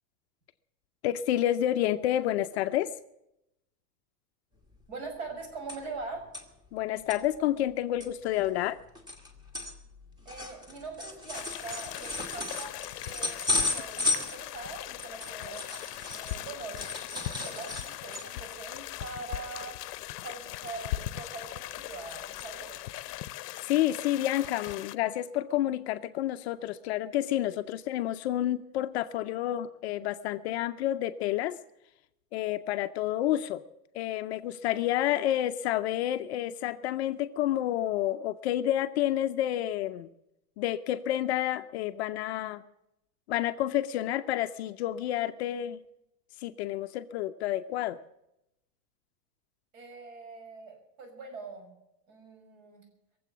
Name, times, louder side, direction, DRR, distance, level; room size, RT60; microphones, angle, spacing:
voice 1, 1.0-2.9 6.7-8.8 23.6-31.6 32.3-33.6 33.9-40.1 40.6-42.6 43.3-45.8 46.4-48.0, left 13 dB, 45° left, 9 dB, 0.6 m, -29 dB
sound 1, 4.7-4.8 5.1-6.0 6.3-6.4 6.9-7.2 7.7-7.8 8.0-16.5 16.8-18.5 18.9-19.1 19.4-19.6 20.7-21.3 21.7-22.1 22.4-22.5 23.1-23.2, left 2 dB, 10° right, 1.4 m, -35 dB
voice 2, 4.9-6.3 10.2-15.7 16.1-19.8 20.2-22.8 49.7-51.7 52.1-52.8, right 3 dB, 55° right, 4 dB, 6.3 m, -43 dB
sound 2, 11.3-24.9, left 15 dB, 80° left, 0.7 m, -40 dB
22.5 x 7.8 x 7.2 m, 0.85 s
supercardioid pair, 165°, 47 cm